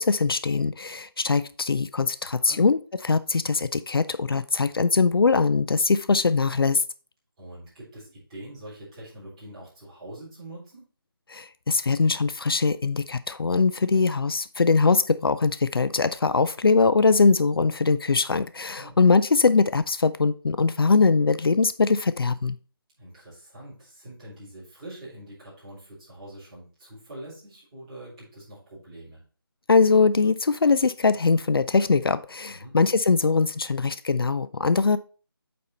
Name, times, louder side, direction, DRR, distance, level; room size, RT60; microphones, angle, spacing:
voice 1, 0.0-6.8 11.3-22.6 29.7-35.0, left 4 dB, 70° left, 14 dB, 0.5 m, -22 dB
voice 2, 2.2-2.6 7.4-10.9 18.8-19.0 23.0-29.2 32.6-32.8, right 1 dB, 15° right, -10 dB, 3.7 m, -44 dB
8.4 x 4.3 x 4.2 m, 0.38 s
figure-of-eight pair, 175°, 13 cm